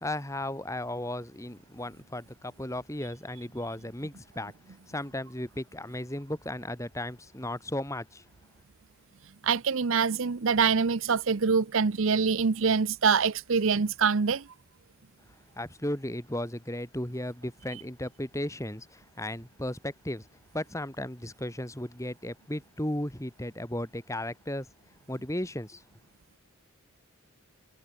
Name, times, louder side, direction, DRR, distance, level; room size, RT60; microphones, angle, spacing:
voice 1, 0.0-8.3 15.6-20.3 20.5-24.7 25.1-25.8, left 1 dB, 15° left, 2.5 m, -35 dB
voice 2, 9.4-14.4, right 5 dB, 65° right, 0.7 m, -25 dB
head